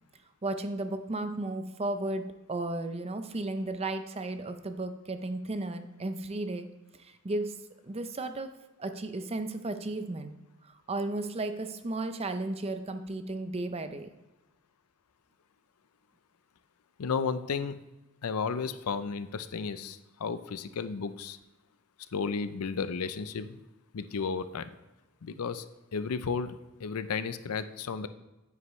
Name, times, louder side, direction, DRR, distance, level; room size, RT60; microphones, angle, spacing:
voice 1, 0.4-6.7 7.0-7.5 7.8-8.5 8.8-10.4 10.9-14.1, right 2 dB, 25° right, 9 dB, 0.6 m, -34 dB
voice 2, 17.0-17.8 18.2-21.4 22.1-23.6 23.9-24.7 25.2-25.7 25.9-28.1, left 5 dB, 80° left, 13 dB, 0.5 m, -33 dB
9.5 x 8.4 x 3.1 m, 1.1 s
head